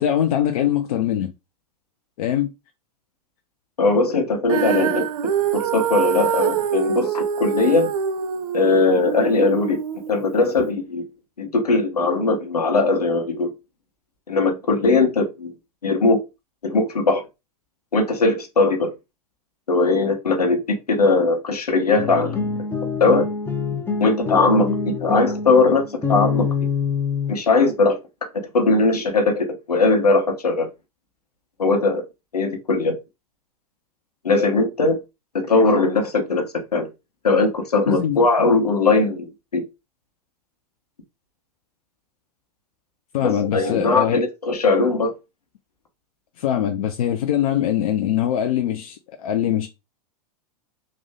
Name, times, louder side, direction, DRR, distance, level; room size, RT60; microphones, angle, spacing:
voice 1, 0.0-1.3 2.2-2.5 37.9-38.2 43.1-44.2 46.4-49.7, left 10 dB, 65° left, 0.6 m, -22 dB
voice 2, 3.8-5.1 5.5-7.9 8.5-9.8 10.1-11.0 11.4-13.5 14.3-15.5 15.8-16.2 16.6-17.2 17.9-18.9 19.7-22.4 23.0-23.3 24.0-26.5 27.3-28.3 28.5-30.7 31.6-32.0 32.3-32.9 34.2-35.0 35.4-36.4 36.7-36.9 37.2-39.6 43.2-45.1, left 3 dB, 90° left, 1.1 m, -19 dB
Female singing, 4.5-10.7, right 8 dB, 65° right, 0.5 m, -25 dB
sound 1, 21.9-27.3, left 5 dB, 10° left, 0.8 m, -25 dB
3.2 x 2.4 x 3.6 m
hypercardioid pair, 100°, 19 cm